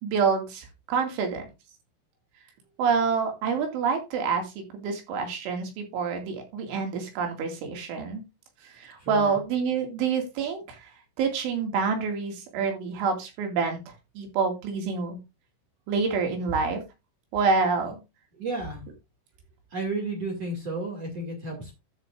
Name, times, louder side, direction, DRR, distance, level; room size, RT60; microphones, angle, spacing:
voice 1, 0.0-1.5 2.8-8.2 8.6-10.9 11.2-15.2 15.9-16.8 17.3-18.0, right 5 dB, 70° right, 4 dB, 4.6 m, -27 dB
voice 2, 9.0-9.3 17.8-17.9 18.4-18.8 19.7-21.7, right 2 dB, 40° right, 0 dB, 2.6 m, -32 dB
12.5 x 7.9 x 2.6 m, 0.24 s
omnidirectional pair, 5.9 m